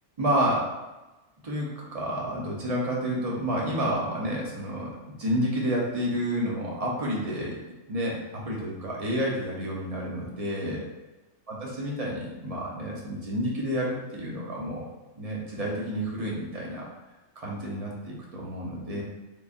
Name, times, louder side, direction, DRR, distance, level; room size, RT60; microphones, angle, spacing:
voice 1, 0.2-0.7 1.4-7.6 7.9-10.8 11.5-14.8 15.2-16.9 17.4-19.0, equal, 35° right, -3 dB, 0.8 m, -30 dB
3.8 x 3.4 x 2.5 m, 1.1 s
omnidirectional pair, 1.3 m